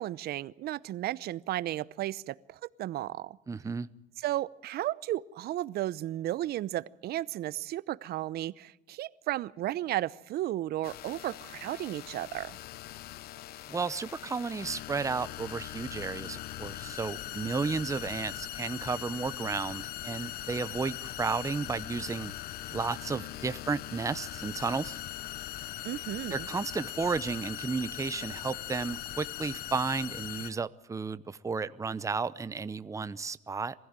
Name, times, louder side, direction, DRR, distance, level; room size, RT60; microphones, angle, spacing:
voice 1, 0.0-3.4 4.2-12.6 25.8-26.5, right 14 dB, 70° right, 19 dB, 0.8 m, -34 dB
voice 2, 3.5-3.9 13.7-22.3 22.7-25.0 26.3-33.7, right 4 dB, 20° right, 14 dB, 0.8 m, -33 dB
sound 1, 10.8-30.5, left 13 dB, 65° left, 0.7 m, -41 dB
23.5 x 15.5 x 8.9 m, 0.86 s
cardioid pair, 110°, 17 cm